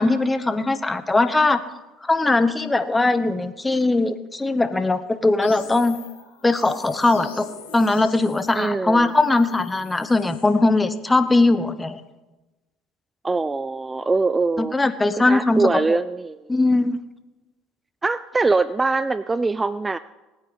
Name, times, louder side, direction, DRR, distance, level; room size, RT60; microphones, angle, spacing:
voice 1, 0.0-1.6 2.0-6.0 6.4-7.5 7.7-12.0 14.6-16.0 16.5-17.0, left 2 dB, 15° left, 12 dB, 1.0 m, -20 dB
sound 1, 5.4-10.5, left 6 dB, 85° left, 3.1 m, -43 dB
voice 2, 8.5-9.1 13.2-14.8 15.1-16.5 18.0-20.0, right 3 dB, 20° right, 17 dB, 0.4 m, -23 dB
19.5 x 9.2 x 4.0 m, 1.1 s
hypercardioid pair, 70°, 0 cm